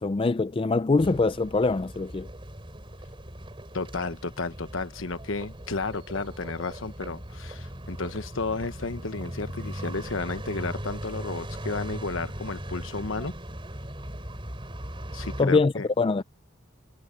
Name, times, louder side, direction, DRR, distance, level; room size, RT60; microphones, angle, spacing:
voice 1, 0.0-2.3 15.4-16.2, left 3 dB, 25° left, 0.4 m, -23 dB
sound 1, 1.0-15.4, right 1 dB, 25° right, 4.0 m, -39 dB
voice 2, 3.7-13.3 15.1-15.9, left 3 dB, 70° left, 1.2 m, -32 dB
head